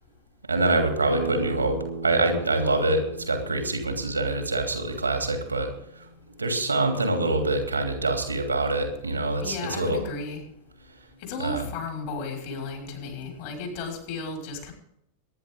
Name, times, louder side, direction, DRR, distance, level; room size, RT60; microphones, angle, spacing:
voice 1, 0.5-5.7 6.4-10.0 11.4-11.7, right 2 dB, 80° right, 4 dB, 3.1 m, -25 dB
sound 1, 1.1-6.5, right 3 dB, 85° left, 1.8 m, -38 dB
voice 2, 9.4-10.4 11.2-14.7, left 3 dB, 50° left, 1 dB, 5.7 m, -34 dB
22.5 x 11.0 x 3.8 m, 0.77 s
figure-of-eight pair, 90°, 0 cm